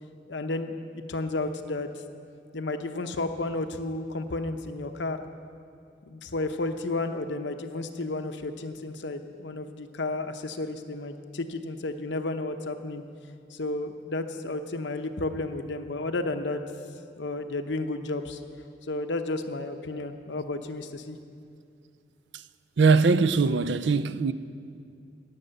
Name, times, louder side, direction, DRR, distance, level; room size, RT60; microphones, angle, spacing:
voice 1, 0.3-0.7 1.1-1.9 2.5-5.2 6.1-13.0 13.5-16.6 17.2-18.4 18.9-21.2, left 2 dB, 75° left, 0.8 m, -32 dB
voice 2, 22.8-24.3, right 4 dB, 70° right, 0.4 m, -21 dB
17.5 x 6.6 x 7.8 m
head